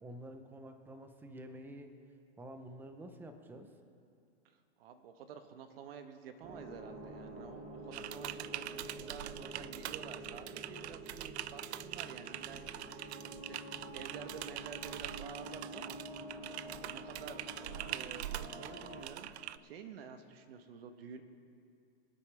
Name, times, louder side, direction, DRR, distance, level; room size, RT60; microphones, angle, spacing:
voice 1, 0.0-1.9 2.4-3.7, right 1 dB, 5° right, 7 dB, 0.6 m, -49 dB
voice 2, 4.4-16.0 16.4-16.6 16.8-21.2, right 7 dB, 65° right, 8 dB, 1.2 m, -51 dB
sound 1, 6.4-19.0, right 1 dB, 25° right, 2.3 m, -48 dB
Typing, 7.9-19.6, right 13 dB, 80° right, 0.5 m, -44 dB
24.5 x 8.6 x 3.4 m, 2.5 s
hypercardioid pair, 140°, 33 cm